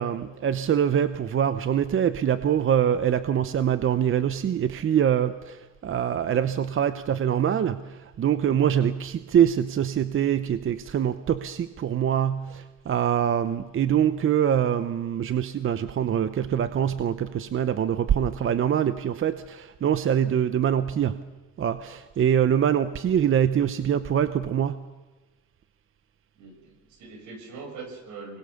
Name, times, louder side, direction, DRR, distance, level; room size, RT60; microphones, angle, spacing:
voice 1, 0.0-21.3 21.6-24.9, right 9 dB, 45° right, 12 dB, 0.9 m, -24 dB
voice 2, 26.4-28.4, right 4 dB, 80° right, 5 dB, 6.1 m, -42 dB
24.5 x 21.0 x 7.1 m, 1.2 s
cardioid pair, 130°, 29 cm